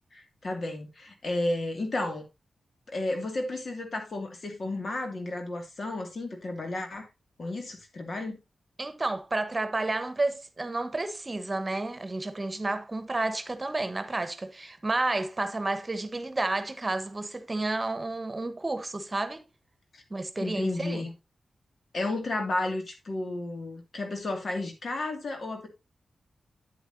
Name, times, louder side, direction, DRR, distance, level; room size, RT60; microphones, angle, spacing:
voice 1, 0.1-2.3 2.9-7.1 7.4-8.4 19.9-20.0 20.4-21.1 21.9-25.7, left 2 dB, 60° left, 2.4 m, -32 dB
voice 2, 8.8-19.4 20.1-21.1, right 2 dB, 35° right, 1.2 m, -31 dB
9.2 x 8.3 x 2.8 m
supercardioid pair, 40°, 0 cm